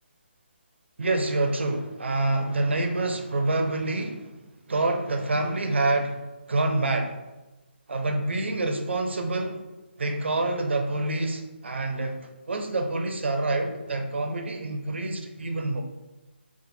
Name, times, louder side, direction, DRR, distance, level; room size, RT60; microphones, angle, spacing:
voice 1, 1.0-4.4 4.7-7.2 7.9-9.6 10.0-15.8, right 2 dB, 80° right, 0.5 m, -27 dB
3.9 x 2.4 x 4.2 m
hypercardioid pair, 175°, 6 cm